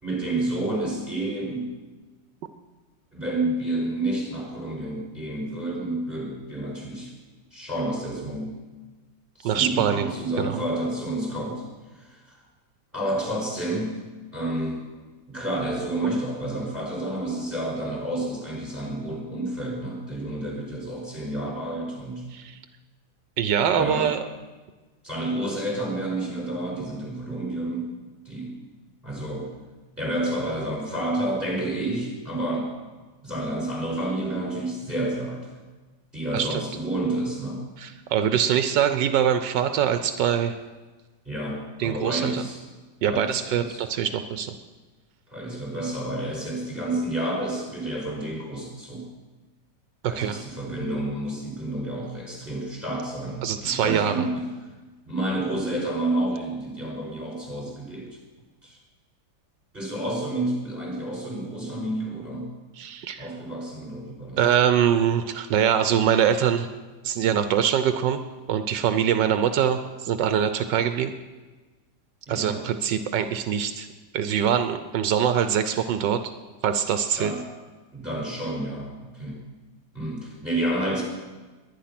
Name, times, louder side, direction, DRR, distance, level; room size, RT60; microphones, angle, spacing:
voice 1, 0.0-1.7 3.1-7.1 7.5-8.5 9.4-11.6 11.9-12.4 12.9-14.0 14.3-14.8 15.3-22.2 23.7-24.2 25.0-27.9 28.2-28.7 29.0-29.5 30.0-32.7 33.2-35.5 36.1-37.6 41.3-42.6 43.1-43.8 45.3-49.1 50.1-54.5 55.1-58.2 58.6-58.8 59.7-62.5 63.2-64.4 72.3-72.6 77.2-77.4 77.9-79.4 79.9-81.0, right 1 dB, 5° right, -1 dB, 5.6 m, -30 dB
voice 2, 9.4-10.1 10.4-10.6 22.3-22.6 23.4-24.3 36.3-36.6 37.8-40.6 41.8-42.4 43.0-44.5 50.0-50.4 53.4-54.1 62.8-63.3 64.4-66.7 67.0-68.2 68.5-71.1 72.3-73.9 74.1-76.2 76.6-77.3, right 9 dB, 80° right, 10 dB, 1.4 m, -23 dB
21.5 x 9.9 x 5.9 m, 1.3 s
omnidirectional pair, 1.9 m